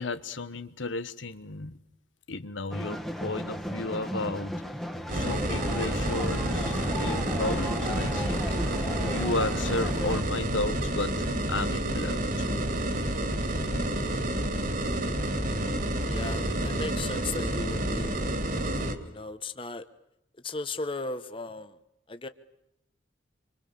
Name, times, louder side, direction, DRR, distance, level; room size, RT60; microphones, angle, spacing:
voice 1, 0.0-1.8 2.3-4.8 5.1-12.6, left 2 dB, 85° left, 11 dB, 1.3 m, -34 dB
sound 1, 2.7-10.2, equal, ahead, 1.5 m, -35 dB
sound 2, 5.1-19.0, right 1 dB, 45° right, 2.7 m, -29 dB
voice 2, 16.1-18.2 18.4-19.8 20.4-21.8 22.1-22.3, left 3 dB, 25° left, 10 dB, 1.1 m, -37 dB
26.5 x 25.5 x 7.0 m, 0.83 s
head